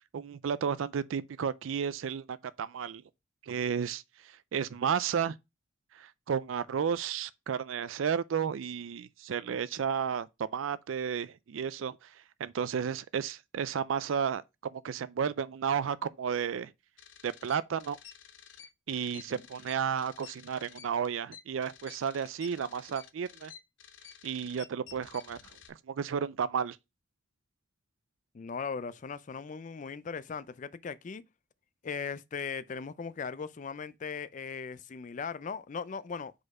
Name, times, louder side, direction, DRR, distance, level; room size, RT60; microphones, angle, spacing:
voice 1, 0.1-3.0 3.5-4.0 4.5-5.4 6.0-12.0 12.4-16.7 17.2-18.0 18.9-23.5 24.2-25.4 25.7-26.8, right 7 dB, 85° right, 0.4 m, -32 dB
sound 1, 17.0-25.7, left 8 dB, 70° left, 0.7 m, -52 dB
voice 2, 28.3-31.2 31.8-36.3, left 5 dB, 40° left, 0.4 m, -38 dB
5.2 x 4.2 x 4.7 m
head